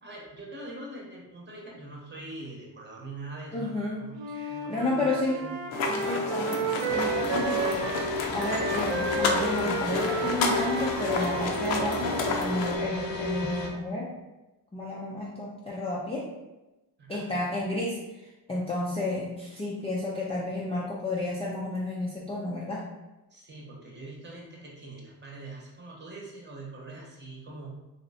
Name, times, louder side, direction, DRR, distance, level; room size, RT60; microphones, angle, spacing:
voice 1, 0.0-4.2 4.5-5.7 17.0-17.2 23.3-27.7, right 2 dB, 25° right, -3 dB, 0.9 m, -43 dB
voice 2, 3.5-5.4 5.9-14.1 14.7-16.3 17.1-22.8, left 2 dB, 15° left, -5 dB, 0.4 m, -32 dB
Wind instrument woodwind instrument, 4.1-12.5, right 3 dB, 70° right, 0.6 m, -32 dB
sound 1, 5.7-12.8, left 3 dB, 85° left, 0.6 m, -31 dB
sound 2, 6.9-13.7, left 2 dB, 50° left, 0.7 m, -34 dB
3.2 x 2.9 x 2.7 m, 1.0 s
cardioid pair, 110°, 44 cm